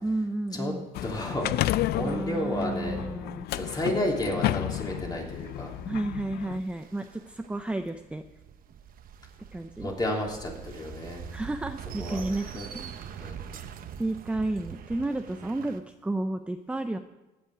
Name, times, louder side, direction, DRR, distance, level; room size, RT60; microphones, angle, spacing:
voice 1, 0.0-0.9 2.0-3.5 5.9-8.2 9.5-9.9 11.3-12.5 12.7-13.4 14.0-17.0, right 2 dB, 5° right, 7 dB, 0.6 m, -32 dB
sound 1, 0.9-6.6, left 14 dB, 70° left, 0.4 m, -31 dB
voice 2, 1.0-3.0 3.5-5.7 9.8-11.3 12.0-12.7 13.2-13.6, left 1 dB, 25° left, -1 dB, 3.4 m, -32 dB
sound 2, 4.7-15.8, right 8 dB, 60° right, 1.0 m, -44 dB
15.5 x 9.4 x 5.0 m, 1.1 s
cardioid pair, 110°, 17 cm